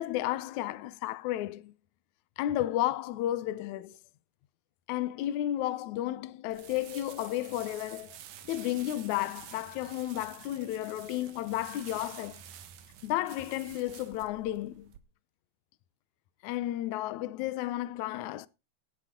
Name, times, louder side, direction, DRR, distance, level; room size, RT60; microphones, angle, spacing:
voice 1, 0.0-1.7 2.4-4.0 4.9-8.2 8.5-12.4 13.0-14.9 16.4-18.5, left 14 dB, 70° left, 2.0 m, -32 dB
sound 1, 6.5-15.0, right 10 dB, 70° right, 2.7 m, -50 dB
18.0 x 10.0 x 3.8 m
omnidirectional pair, 3.9 m